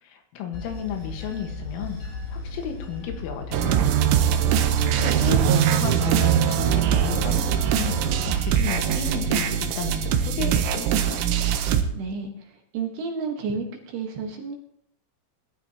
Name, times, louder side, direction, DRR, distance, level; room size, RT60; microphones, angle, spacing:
voice 1, 0.0-4.1 4.5-8.0 8.5-11.2, left 7 dB, 85° left, 4 dB, 4.0 m, -34 dB
Bell / Train, 0.5-9.1, left 3 dB, 65° left, 4.8 m, -36 dB
sound 1, 3.5-11.8, right 9 dB, 80° right, 3.3 m, -22 dB
voice 2, 11.9-14.6, right 4 dB, 65° right, 2 dB, 3.0 m, -31 dB
21.5 x 12.0 x 2.9 m, 0.71 s
omnidirectional pair, 5.7 m